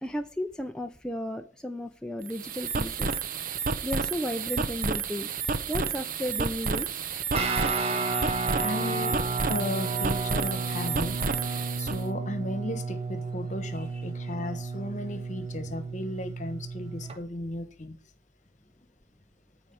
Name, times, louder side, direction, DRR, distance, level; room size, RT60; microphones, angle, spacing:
voice 1, 0.0-3.1 3.8-5.3 5.7-7.1, left 1 dB, 5° left, 0.6 m, -34 dB
sound 1, 2.2-12.0, right 5 dB, 50° right, 0.8 m, -31 dB
Guitar, 7.3-17.2, right 3 dB, 35° right, 1.4 m, -32 dB
voice 2, 8.6-9.2 9.5-11.2 11.4-18.0, left 1 dB, 40° left, 1.3 m, -35 dB
14.5 x 4.9 x 6.9 m
head